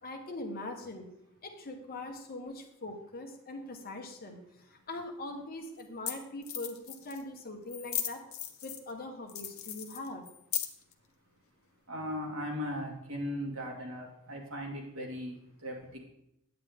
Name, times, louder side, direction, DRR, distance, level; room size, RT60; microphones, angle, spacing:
voice 1, 0.0-1.1 1.4-8.2 8.6-10.2, left 2 dB, 45° left, 1.2 m, -42 dB
sound 1, 5.0-5.1 5.8-5.9 6.1-6.2 6.4-7.2 7.7-8.9 9.3-10.9, left 10 dB, 65° left, 0.9 m, -37 dB
voice 2, 11.9-16.0, equal, 65° right, 2.3 m, -38 dB
9.2 x 8.8 x 3.7 m
head